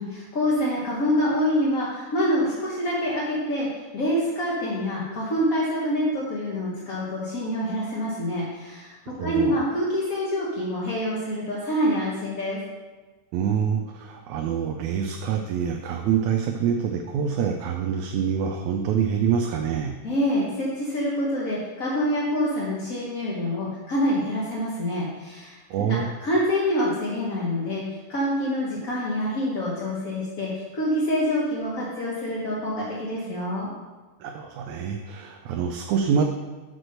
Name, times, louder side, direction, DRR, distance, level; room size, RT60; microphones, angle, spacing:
voice 1, 0.0-3.7 3.9-8.9 9.2-12.6 20.0-25.6 25.9-27.8 28.1-33.7, equal, 55° left, -6 dB, 0.9 m, -26 dB
voice 2, 9.1-9.6 13.3-19.9 25.7-26.1 34.2-36.2, right 7 dB, 85° right, 3 dB, 2.0 m, -26 dB
6.2 x 5.3 x 6.5 m, 1.3 s
omnidirectional pair, 3.4 m